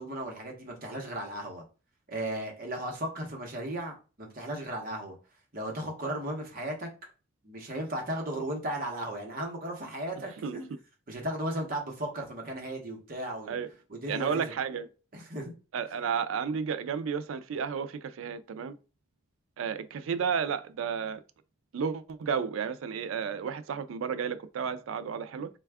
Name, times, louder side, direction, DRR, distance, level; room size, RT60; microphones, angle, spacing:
voice 1, 0.0-1.6 2.1-5.1 5.5-6.9 7.4-10.7 11.1-13.6 14.0-14.5 15.1-15.5, right 1 dB, 45° right, 0.9 m, -35 dB
voice 2, 14.1-14.9 15.7-18.8 19.6-21.2 21.7-25.5, right 6 dB, 70° right, 0.3 m, -32 dB
3.3 x 2.3 x 3.4 m
head